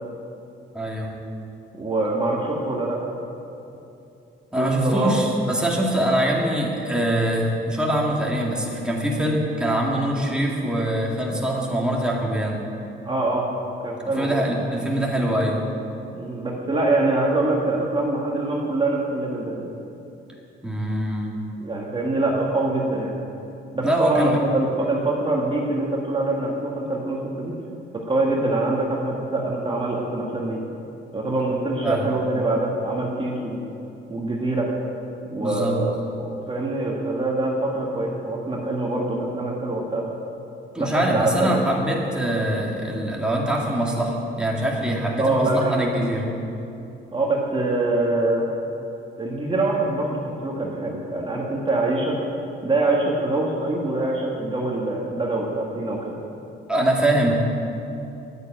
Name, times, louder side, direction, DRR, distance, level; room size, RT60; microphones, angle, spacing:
voice 1, 0.7-1.1 4.5-12.6 14.2-15.7 20.6-21.3 23.8-24.4 31.8-32.1 35.4-35.8 40.7-46.3 56.7-57.3, right 1 dB, 5° right, -3 dB, 2.4 m, -23 dB
voice 2, 1.8-3.0 4.6-5.2 13.1-13.5 13.8-14.4 16.1-19.7 21.6-23.1 23.7-27.5 27.9-30.6 31.1-33.6 34.1-34.7 35.3-40.1 40.8-41.6 45.2-46.1 47.1-48.5 49.2-52.2 52.6-56.2, right 2 dB, 25° right, -3 dB, 2.1 m, -24 dB
9.8 x 9.4 x 9.1 m, 2.8 s
cardioid pair, 90°, 20 cm